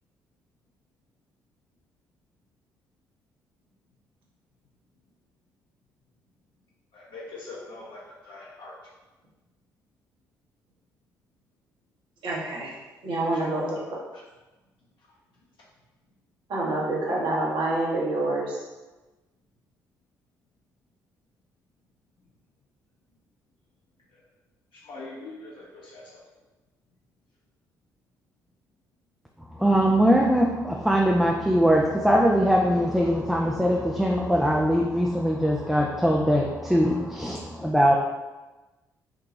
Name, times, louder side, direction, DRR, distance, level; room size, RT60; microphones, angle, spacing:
voice 1, 6.9-8.0 8.3-8.7 24.8-26.1, left 3 dB, 55° left, -5 dB, 1.1 m, -42 dB
voice 2, 12.2-12.7 13.0-13.8 16.5-18.6, right 2 dB, 55° right, -4 dB, 1.0 m, -27 dB
voice 3, 29.5-38.0, equal, ahead, -1 dB, 0.4 m, -21 dB
3.8 x 2.2 x 3.0 m, 1.1 s
figure-of-eight pair, 45°, 10 cm